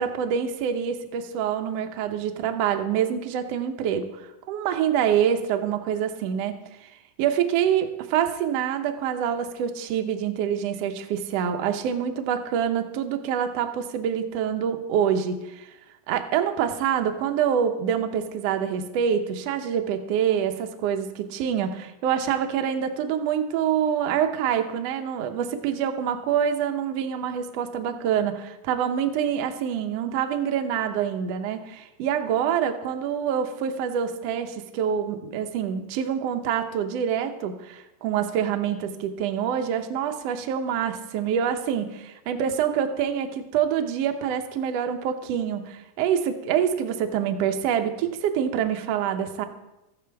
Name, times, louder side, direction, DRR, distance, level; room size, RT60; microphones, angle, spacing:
voice 1, 0.0-4.2 4.5-6.9 7.2-15.7 16.1-49.5, right 8 dB, 70° right, 6 dB, 1.7 m, -26 dB
14.0 x 9.9 x 3.4 m, 0.96 s
omnidirectional pair, 3.4 m